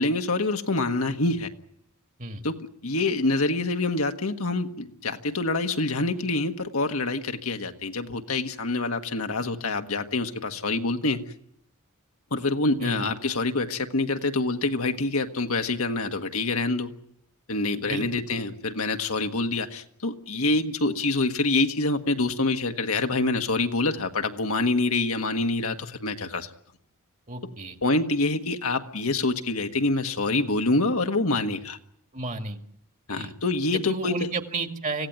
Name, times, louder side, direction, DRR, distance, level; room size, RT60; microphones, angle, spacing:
voice 1, 0.0-1.5 2.4-11.2 12.3-16.9 17.5-26.5 27.8-31.8 33.1-34.3, left 2 dB, 75° left, 5 dB, 1.6 m, -26 dB
voice 2, 12.8-13.1 17.8-18.0 27.3-27.8 32.1-32.6 33.2-33.3 33.7-35.1, right 3 dB, 35° right, 6 dB, 2.0 m, -32 dB
26.0 x 16.5 x 9.4 m, 0.72 s
head